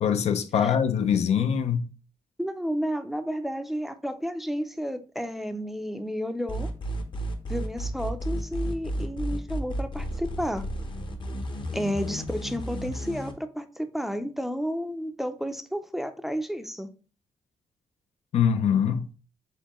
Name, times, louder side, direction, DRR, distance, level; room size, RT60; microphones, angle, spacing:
voice 1, 0.0-1.9 18.3-19.1, left 8 dB, 70° left, 0.4 m, -23 dB
voice 2, 2.4-6.7 7.5-10.7 11.7-16.9, equal, ahead, 0.4 m, -31 dB
sound 1, 6.5-13.3, equal, 45° left, 0.8 m, -32 dB
4.3 x 3.7 x 3.0 m
cardioid pair, 90°, 12 cm